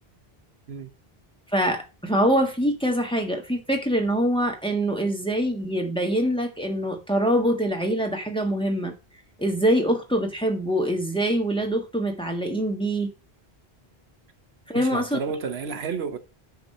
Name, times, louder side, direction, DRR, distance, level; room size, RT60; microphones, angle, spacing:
voice 1, 1.5-8.9 9.4-13.1 14.7-15.2, right 1 dB, 5° left, 1.6 m, -24 dB
voice 2, 14.7-16.2, right 5 dB, 85° right, 1.2 m, -31 dB
9.4 x 4.8 x 5.5 m
omnidirectional pair, 1.0 m